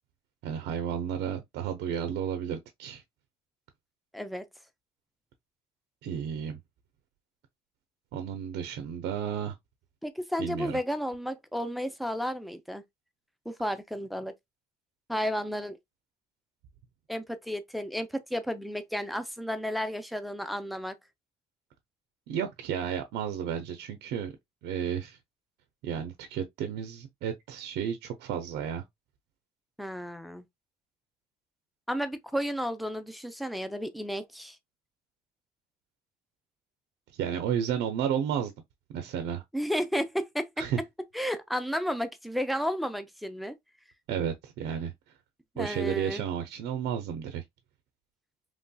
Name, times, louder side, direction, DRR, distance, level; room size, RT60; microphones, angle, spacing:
voice 1, 0.4-3.0 6.0-6.6 8.1-9.5 10.4-10.8 22.3-24.3 24.6-25.2 25.8-28.8 37.1-38.5 38.9-39.4 40.6-40.8 44.1-44.9 45.6-47.4, right 8 dB, 80° right, 0.5 m, -32 dB
voice 2, 4.1-4.5 10.0-12.8 13.5-14.3 15.1-15.8 17.1-21.0 29.8-30.4 31.9-34.6 39.5-40.7 41.1-43.6 45.6-46.2, equal, ahead, 0.4 m, -32 dB
3.1 x 2.6 x 2.2 m
cardioid pair, 110°, 17 cm